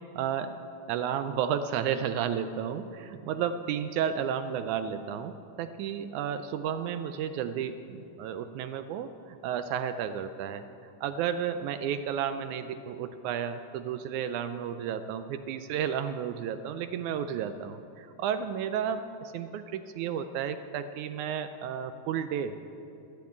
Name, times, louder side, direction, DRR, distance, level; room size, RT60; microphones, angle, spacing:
voice 1, 0.2-0.5 0.9-10.6 11.0-22.6, right 8 dB, 80° right, 10 dB, 1.9 m, -32 dB
12.0 x 11.0 x 8.4 m, 2.7 s
omnidirectional pair, 3.6 m